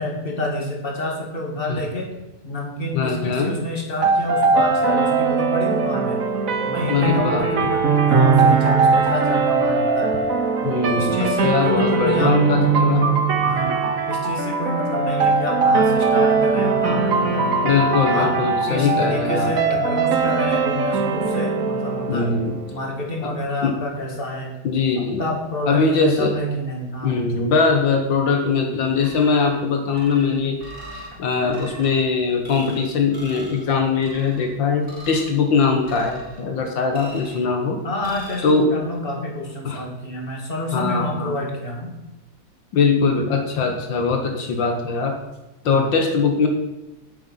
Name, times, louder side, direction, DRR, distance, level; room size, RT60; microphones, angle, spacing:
voice 1, 0.0-2.1 2.4-6.3 6.6-10.2 10.6-12.4 13.4-13.8 14.1-17.7 18.1-18.4 18.7-22.3 22.7-24.6 25.0-27.2 37.8-41.9, left 1 dB, 30° left, -1 dB, 2.5 m, -28 dB
voice 2, 2.9-3.5 6.9-7.7 10.6-13.3 17.6-19.5 22.1-22.6 23.2-23.3 23.6-23.8 24.6-25.3 25.7-26.3 27.0-30.6 30.9-37.8 38.4-38.7 39.6-39.8 40.7-41.3 42.7-45.2 45.7-46.5, left 4 dB, 80° left, 4 dB, 2.0 m, -21 dB
sound 1, 4.0-23.0, right 4 dB, 50° right, 1.4 m, -20 dB
sound 2, 29.0-29.6 29.9-31.1 31.5-32.0 32.4-32.8 33.1-33.6 34.0-34.5 34.8-35.3 35.8-36.4 36.9-37.5 38.0-38.5, right 1 dB, 15° right, 4.5 m, -41 dB
9.9 x 9.0 x 5.7 m, 1.0 s
omnidirectional pair, 2.0 m